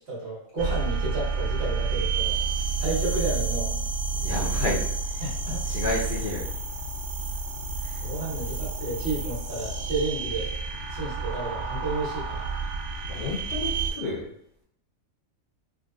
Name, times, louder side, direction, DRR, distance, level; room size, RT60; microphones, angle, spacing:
voice 1, 0.1-2.4 2.8-3.7 5.2-5.6 8.0-10.5 10.9-12.4, right 2 dB, 50° right, -7 dB, 1.5 m, -31 dB
sound 1, 0.6-13.9, right 4 dB, 85° right, 1.1 m, -30 dB
voice 2, 4.1-5.2 5.6-6.5 7.8-8.0 13.1-14.2, left 2 dB, 50° left, -7 dB, 0.7 m, -31 dB
3.8 x 2.5 x 2.3 m, 0.72 s
omnidirectional pair, 1.4 m